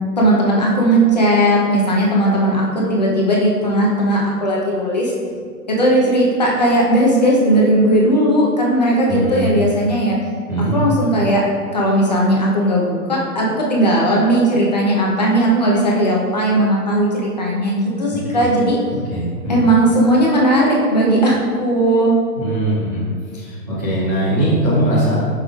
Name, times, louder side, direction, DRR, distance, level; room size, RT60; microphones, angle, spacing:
voice 1, 0.2-5.1 5.7-10.2 10.7-11.4 11.7-18.8 19.5-22.1, right 1 dB, 25° left, -4 dB, 0.7 m, -16 dB
voice 2, 9.1-9.5 10.5-10.7 18.3-18.5 18.9-19.6 22.3-25.2, right 1 dB, 10° right, -15 dB, 0.7 m, -20 dB
8.3 x 5.7 x 2.4 m, 2.1 s
hypercardioid pair, 175°, 48 cm